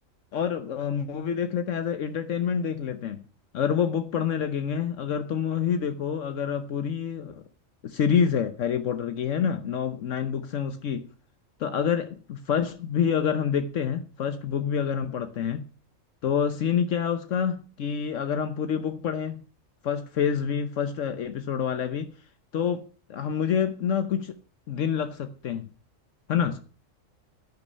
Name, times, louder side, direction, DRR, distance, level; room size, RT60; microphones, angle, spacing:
voice 1, 0.3-3.2 3.5-7.4 7.8-11.1 11.6-15.6 16.2-19.4 19.8-22.1 22.5-22.8 23.1-24.3 24.7-25.7 26.3-26.6, left 7 dB, 75° left, 1.2 m, -27 dB
11.0 x 10.5 x 5.4 m
omnidirectional pair, 1.3 m